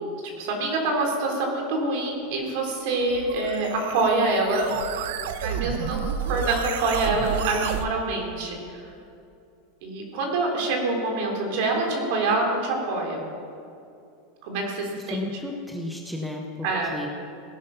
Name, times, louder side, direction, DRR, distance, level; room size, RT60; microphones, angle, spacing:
voice 1, 0.4-4.7 5.4-6.0 6.3-8.9 9.8-13.2 14.4-15.2 16.6-16.9, right 2 dB, 55° right, 1 dB, 3.7 m, -26 dB
sound 1, 2.9-7.9, right 7 dB, 75° right, 1.0 m, -31 dB
voice 2, 15.1-17.1, left 1 dB, ahead, 0 dB, 1.0 m, -33 dB
17.5 x 11.0 x 5.8 m, 2.6 s
supercardioid pair, 155°, 0 cm